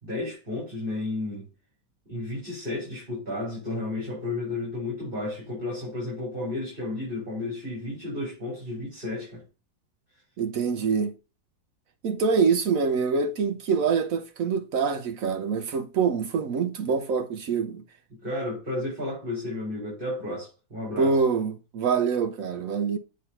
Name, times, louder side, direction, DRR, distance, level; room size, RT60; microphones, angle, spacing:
voice 1, 0.0-1.5 2.1-9.4 18.2-21.2, left 2 dB, 25° right, 4.4 m, -32 dB
voice 2, 10.4-11.1 12.0-17.8 21.0-23.0, right 5 dB, 65° right, 0.9 m, -25 dB
8.3 x 3.9 x 5.6 m
omnidirectional pair, 2.1 m